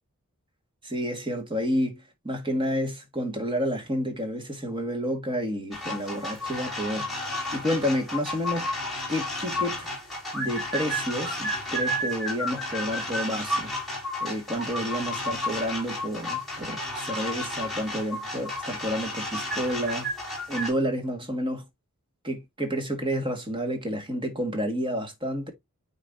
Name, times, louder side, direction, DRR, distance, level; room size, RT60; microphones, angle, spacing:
voice 1, 0.8-7.2 7.5-8.7 9.1-9.9 10.3-13.7 14.2-20.1 20.5-21.6 22.2-25.5, equal, 20° right, 1.7 m, -30 dB
sound 1, 5.7-20.7, left 1 dB, ahead, 3.4 m, -32 dB
9.3 x 4.0 x 2.6 m
head